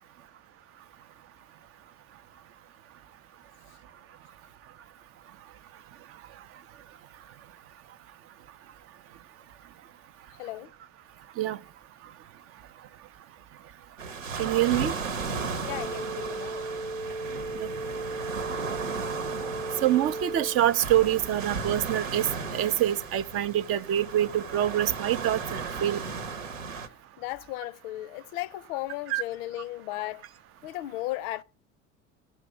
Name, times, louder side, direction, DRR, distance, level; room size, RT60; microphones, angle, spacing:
voice 1, 10.4-10.7 15.7-16.7 27.2-30.3 30.6-31.4, left 16 dB, 50° left, 0.5 m, -35 dB
sound 1, 14.0-26.9, right 4 dB, 75° right, 1.1 m, -35 dB
voice 2, 14.4-14.9 17.5-17.7 19.8-26.0 29.1-29.2, right 12 dB, 35° right, 0.5 m, -26 dB
sound 2, 15.6-20.6, right 2 dB, 5° left, 0.6 m, -36 dB
15.5 x 6.5 x 5.6 m
figure-of-eight pair, 60°, 38 cm